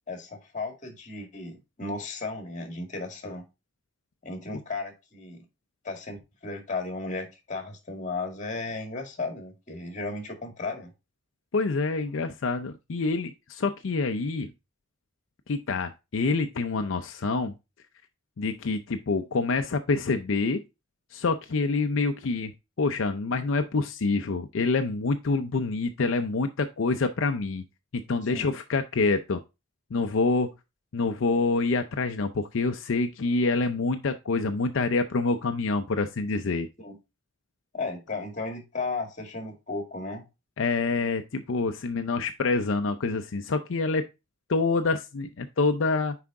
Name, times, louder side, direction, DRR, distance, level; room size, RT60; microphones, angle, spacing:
voice 1, 0.1-3.5 4.2-5.4 5.8-10.9 28.3-28.5 36.8-37.0 37.7-40.2, left 3 dB, 40° left, 4 dB, 1.9 m, -35 dB
voice 2, 11.5-14.5 15.5-17.5 18.4-20.6 21.1-22.5 22.8-27.6 27.9-29.4 29.9-30.5 30.9-36.7 40.6-44.0 44.5-46.1, left 3 dB, 80° left, 7 dB, 0.5 m, -26 dB
5.9 x 4.9 x 3.6 m, 0.25 s
head